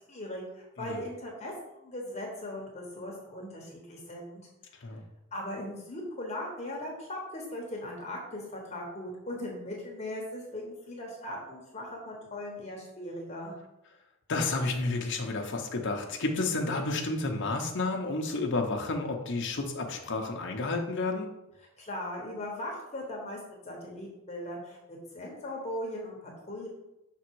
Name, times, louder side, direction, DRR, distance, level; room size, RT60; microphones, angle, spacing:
voice 1, 0.1-4.4 5.3-13.5 21.8-23.4 23.6-26.7, left 1 dB, 30° left, -1 dB, 1.1 m, -39 dB
voice 2, 14.3-21.3, left 3 dB, 60° left, 1 dB, 0.8 m, -31 dB
6.0 x 3.7 x 4.6 m, 0.90 s
head